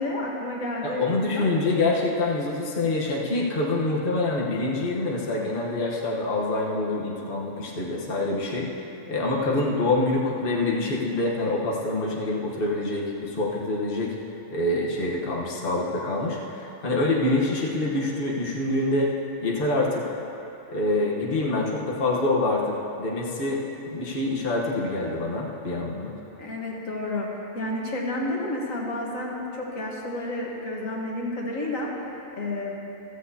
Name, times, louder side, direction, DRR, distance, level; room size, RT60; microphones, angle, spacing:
voice 1, 0.0-1.5 26.4-27.3 27.5-31.9 32.3-32.7, left 1 dB, 75° left, -2 dB, 1.8 m, -30 dB
voice 2, 0.8-8.7 9.1-14.1 14.5-19.1 19.4-20.1 20.7-23.6 23.9-26.1, left 2 dB, 45° left, -4 dB, 1.3 m, -26 dB
15.0 x 14.0 x 2.8 m, 3.0 s
omnidirectional pair, 1.4 m